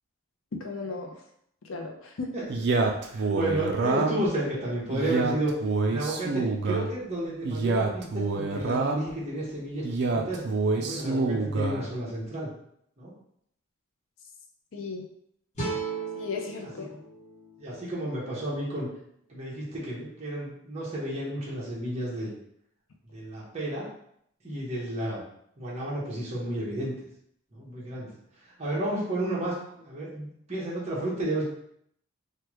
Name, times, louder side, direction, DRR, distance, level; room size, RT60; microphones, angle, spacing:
voice 1, 0.6-1.2 1.6-2.3 14.7-15.1 16.2-16.9, left 4 dB, 65° left, 3 dB, 0.5 m, -35 dB
Male speech man speaking, 2.5-4.3 4.9-6.9 7.4-9.1 9.8-11.8, right 3 dB, 50° right, 0.4 m, -27 dB
voice 2, 3.1-5.5 5.9-10.4 10.8-12.5 13.0-13.1 16.9-17.0 17.6-18.9 19.3-22.3 23.1-23.9 24.4-25.2 25.6-26.9 27.5-28.1 28.6-31.4, right 1 dB, 30° right, -6 dB, 0.9 m, -32 dB
sound 1, 15.5-18.7, right 4 dB, 30° left, 1.0 m, -37 dB
3.3 x 2.2 x 3.0 m, 0.70 s
head